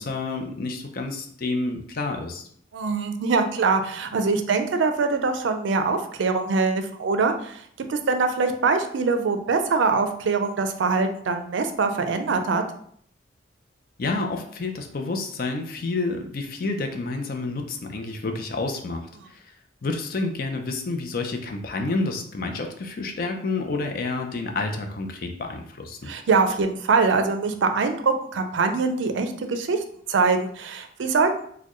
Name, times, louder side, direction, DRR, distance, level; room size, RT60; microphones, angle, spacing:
voice 1, 0.0-2.5 14.0-19.4 19.8-26.1, left 3 dB, 50° left, 4 dB, 0.5 m, -29 dB
voice 2, 2.7-7.6 7.9-12.6 26.1-29.8 30.1-31.5, right 4 dB, 75° right, 7 dB, 0.4 m, -23 dB
4.3 x 2.2 x 3.0 m, 0.63 s
head